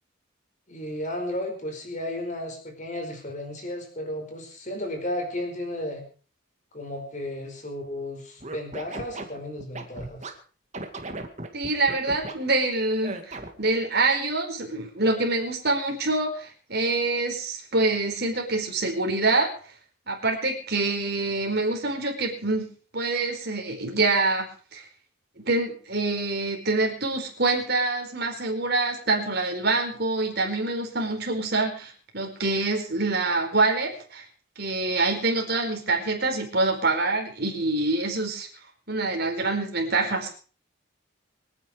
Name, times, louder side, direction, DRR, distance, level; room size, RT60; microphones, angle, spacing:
voice 1, 0.7-6.0 6.7-10.3, left 1 dB, 35° left, 3 dB, 4.9 m, -33 dB
Scratching (performance technique), 8.4-10.3 10.7-12.3 13.0-13.7, right 2 dB, 35° right, 2.1 m, -36 dB
voice 2, 11.5-19.5 20.1-22.7 22.9-24.5 24.7-24.8 25.4-34.2 34.6-38.5 38.9-40.3, right 3 dB, 50° right, 2 dB, 4.6 m, -26 dB
25.0 x 9.7 x 5.1 m, 0.40 s
head